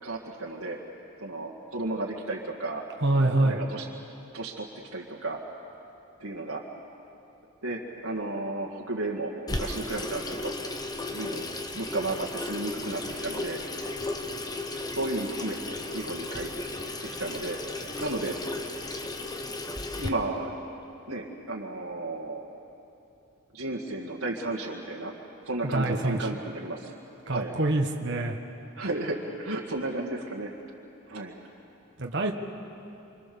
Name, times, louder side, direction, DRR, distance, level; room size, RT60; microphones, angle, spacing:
voice 1, 0.0-0.8 1.2-2.8 3.1-3.9 4.3-4.7 4.9-5.4 6.2-6.6 7.6-10.6 11.1-11.4 11.7-13.6 14.7-16.5 17.2-18.9 20.0-20.5 21.1-22.5 23.5-25.1 25.5-27.0 27.3-27.6 28.8-30.5 31.1-31.4, right 2 dB, 80° right, -3 dB, 2.0 m, -33 dB
voice 2, 3.0-3.6 25.6-26.4 27.3-28.4 32.0-32.3, right 2 dB, 50° right, 2 dB, 1.5 m, -26 dB
Water tap faucet / Sink (filling or washing), 9.5-20.1, left 2 dB, 15° left, 1.0 m, -35 dB
26.5 x 25.5 x 7.0 m, 2.9 s
head